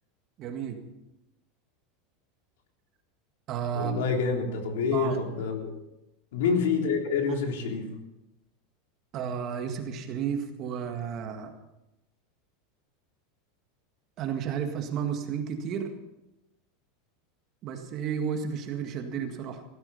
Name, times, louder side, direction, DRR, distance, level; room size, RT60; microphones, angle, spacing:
voice 1, 0.4-0.8 3.5-4.0 4.9-5.2 9.1-11.5 14.2-15.9 17.6-19.6, right 7 dB, 30° right, 5 dB, 1.9 m, -32 dB
voice 2, 3.7-5.7 6.3-7.9, left 5 dB, 90° left, 3 dB, 3.3 m, -27 dB
16.5 x 13.5 x 5.6 m, 0.92 s
supercardioid pair, 175°, 0 cm